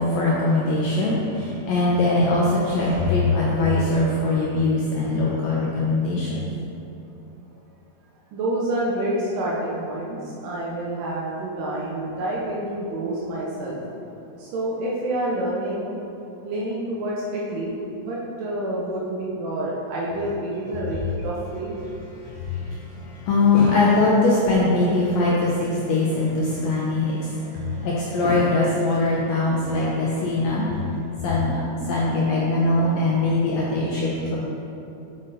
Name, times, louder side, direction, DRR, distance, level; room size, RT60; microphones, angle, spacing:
voice 1, 0.0-6.4 22.2-30.9 31.2-34.4, left 2 dB, 80° left, -5 dB, 1.5 m, -22 dB
voice 2, 8.3-13.8 14.4-16.0 16.4-21.7, right 1 dB, 75° right, -5 dB, 2.3 m, -28 dB
7.7 x 5.3 x 4.0 m, 2.9 s
omnidirectional pair, 3.9 m